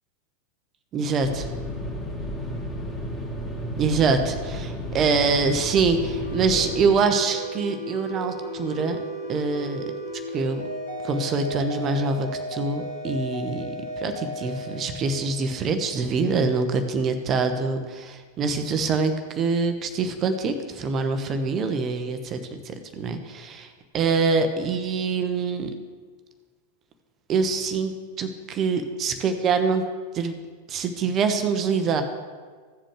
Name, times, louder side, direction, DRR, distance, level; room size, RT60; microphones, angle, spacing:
voice 1, 0.9-1.5 3.8-9.0 9.3-9.8 10.3-10.7 11.0-22.4 22.6-25.7 27.3-29.9 30.1-30.3 30.7-32.0, right 4 dB, 30° right, 7 dB, 0.9 m, -25 dB
sound 1, 1.2-6.9, equal, 15° left, 2.4 m, -32 dB
sound 2, 6.0-16.3, equal, 80° left, 2.5 m, -35 dB
15.0 x 7.6 x 3.3 m, 1.5 s
figure-of-eight pair, 90°, 0 cm